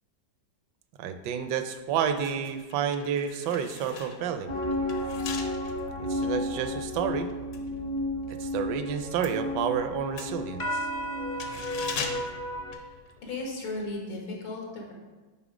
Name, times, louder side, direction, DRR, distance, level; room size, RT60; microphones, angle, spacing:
voice 1, 1.0-4.5 6.0-7.3 8.4-10.9, right 8 dB, 75° right, 9 dB, 1.1 m, -30 dB
sound 1, 1.9-8.5 8.8-13.5 13.7-13.9, left 5 dB, 60° left, 0.9 m, -41 dB
sound 2, 4.5-12.7, left 1 dB, 45° left, 0.6 m, -32 dB
voice 2, 13.2-14.9, left 2 dB, 85° left, -1 dB, 2.2 m, -35 dB
9.0 x 3.4 x 4.9 m, 1.2 s
omnidirectional pair, 2.1 m